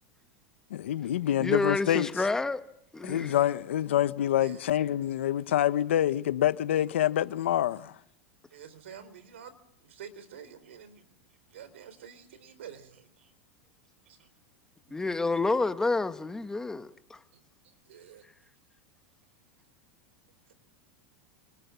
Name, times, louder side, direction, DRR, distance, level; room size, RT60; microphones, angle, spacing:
voice 1, 0.7-2.1 3.0-7.9, left 12 dB, 90° left, 1.3 m, -26 dB
voice 2, 1.4-2.6 2.9-3.3 14.9-17.2, left 3 dB, 10° left, 1.5 m, -29 dB
voice 3, 8.5-9.5 9.8-11.1 11.5-13.3 14.1-14.3 17.3-17.4 17.9-18.2, right 8 dB, 90° right, 4.1 m, -48 dB
28.0 x 26.5 x 7.1 m
supercardioid pair, 130°, 6 cm